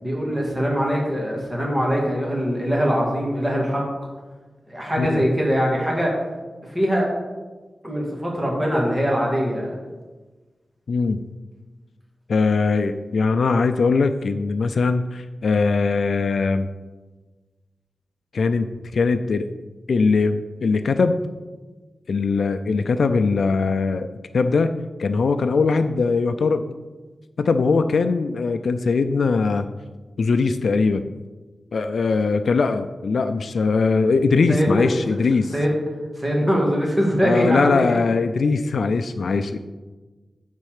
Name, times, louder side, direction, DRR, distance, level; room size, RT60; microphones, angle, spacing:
voice 1, 0.0-3.8 4.7-6.1 6.6-7.1 7.8-9.8 34.5-34.8 35.5-35.7 36.2-38.0, equal, 10° right, -3 dB, 2.2 m, -22 dB
voice 2, 10.9-11.2 12.3-16.7 18.3-18.7 18.9-19.5 19.9-21.2 22.1-24.1 24.3-24.7 25.0-26.6 27.4-29.7 30.2-31.1 31.7-35.5 37.2-39.6, left 4 dB, 70° left, 9 dB, 0.4 m, -21 dB
9.6 x 4.3 x 6.6 m, 1.3 s
wide cardioid pair, 155°, 0 cm